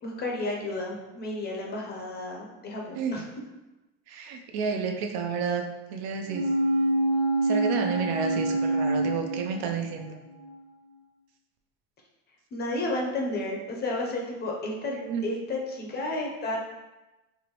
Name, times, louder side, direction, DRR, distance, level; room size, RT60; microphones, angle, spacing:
voice 1, 0.0-3.2 12.5-14.9 15.2-16.6, left 2 dB, 30° left, -1 dB, 0.6 m, -32 dB
voice 2, 4.1-5.6 5.9-6.5 7.4-10.2 14.9-15.3, right 5 dB, 50° right, 4 dB, 0.6 m, -31 dB
sound 1, 6.3-10.1 10.4-10.5, right 2 dB, 75° right, 0.9 m, -26 dB
4.6 x 2.5 x 3.0 m, 1.1 s
supercardioid pair, 135°, 34 cm